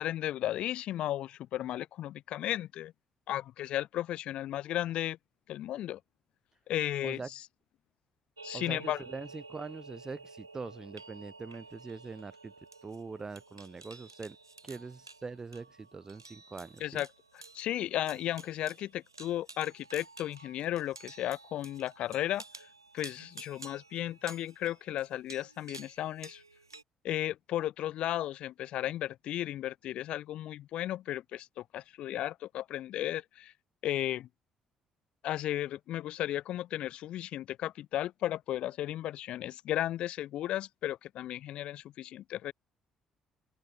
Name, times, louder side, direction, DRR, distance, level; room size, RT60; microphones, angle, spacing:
voice 1, 0.0-2.9 3.3-5.2 5.5-6.0 6.7-7.4 8.4-9.0 16.8-17.1 17.5-22.4 22.9-26.4 27.0-33.5 33.8-34.3 35.2-42.5, left 13 dB, 55° left, 2.2 m, -34 dB
sound 1, 8.4-26.8, right 3 dB, 85° right, 2.6 m, -51 dB
voice 2, 8.5-12.5 12.8-14.4 14.6-17.0, right 4 dB, 30° right, 4.8 m, -43 dB
open air
figure-of-eight pair, 45°, 2 cm